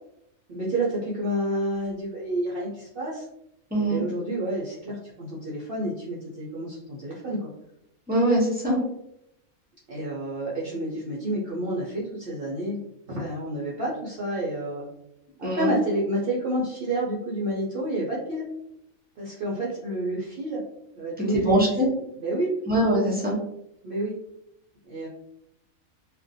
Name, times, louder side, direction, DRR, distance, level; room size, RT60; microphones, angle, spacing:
voice 1, 0.5-3.3 3.8-7.5 9.9-12.8 13.1-14.8 15.4-18.5 19.2-20.6 21.0-21.6 22.2-22.5 23.8-24.2 24.9-25.1, right 1 dB, 60° right, -5 dB, 0.6 m, -29 dB
voice 2, 3.7-4.0 8.1-8.8 15.4-15.7 21.3-21.9 22.7-23.3, right 1 dB, 10° right, -5 dB, 0.4 m, -22 dB
2.5 x 2.1 x 2.6 m, 0.79 s
omnidirectional pair, 1.4 m